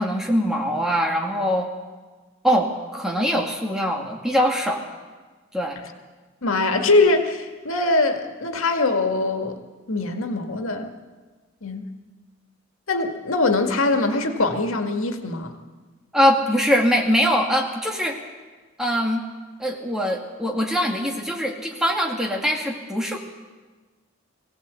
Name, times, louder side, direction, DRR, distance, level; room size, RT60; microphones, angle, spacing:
voice 1, 0.0-1.7 2.4-4.8 5.5-5.8 16.1-18.2 18.8-19.2 19.6-23.2, equal, 5° right, 0 dB, 2.3 m, -22 dB
voice 2, 6.4-9.6 9.9-10.9 11.6-11.9 12.9-15.5, left 2 dB, 90° left, 5 dB, 2.0 m, -22 dB
22.5 x 16.5 x 8.3 m, 1.3 s
head